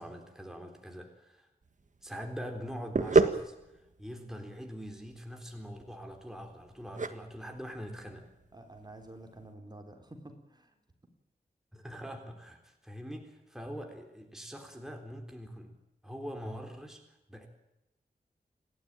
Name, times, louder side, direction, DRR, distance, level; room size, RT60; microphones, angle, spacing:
voice 1, 0.0-1.5 2.0-8.3 11.7-15.7 16.0-17.5, equal, 5° right, 3 dB, 3.7 m, -43 dB
sound 1, 1.6-9.5, right 4 dB, 50° right, 1.7 m, -32 dB
voice 2, 8.5-10.8, right 1 dB, 25° right, 5 dB, 3.9 m, -49 dB
28.5 x 12.5 x 9.1 m, 0.92 s
wide cardioid pair, 90°, 16 cm